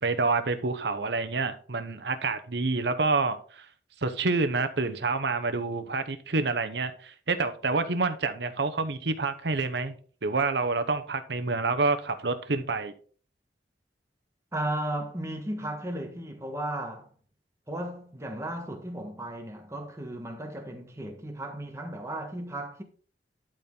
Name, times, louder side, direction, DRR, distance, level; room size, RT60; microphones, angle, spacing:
voice 1, 0.0-3.7 4.0-9.9 10.2-12.9, right 3 dB, 65° right, 0.9 m, -28 dB
voice 2, 14.5-17.2 17.7-22.8, right 1 dB, 15° right, 1.4 m, -35 dB
12.0 x 4.4 x 3.9 m
head